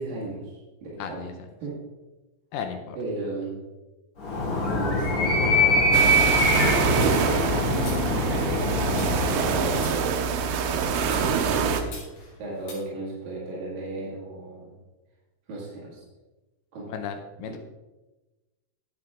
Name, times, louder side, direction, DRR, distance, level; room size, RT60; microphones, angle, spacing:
voice 1, 0.0-1.3 1.6-1.8 3.0-3.6 4.7-10.2 11.1-12.1 12.4-14.7 15.5-16.0 16.7-16.9 17.4-17.6, right 2 dB, 65° right, -7 dB, 3.5 m, -36 dB
voice 2, 1.0-1.3 2.5-3.0 16.9-17.6, left 7 dB, 75° left, 6 dB, 2.0 m, -34 dB
Animal, 4.2-10.0, equal, 30° left, 2.5 m, -23 dB
sound 1, 5.9-11.8, right 6 dB, 85° right, 2.8 m, -25 dB
sound 2, 7.0-8.6 9.0-10.6 11.0-12.7, left 3 dB, 50° left, 3.9 m, -45 dB
11.0 x 7.7 x 3.7 m, 1.1 s
omnidirectional pair, 4.6 m